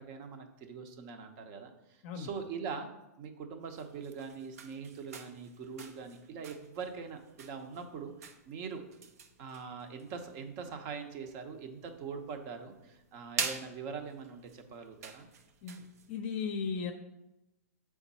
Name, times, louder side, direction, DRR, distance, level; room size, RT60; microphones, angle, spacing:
voice 1, 0.0-2.9 3.2-8.8 9.4-15.3, right 5 dB, 40° right, 6 dB, 0.8 m, -42 dB
sound 1, 3.6-16.2, right 6 dB, 70° right, 0.7 m, -46 dB
voice 2, 15.6-16.9, left 5 dB, 45° left, 4 dB, 0.6 m, -36 dB
7.1 x 3.6 x 4.2 m, 0.95 s
hypercardioid pair, 145°, 8 cm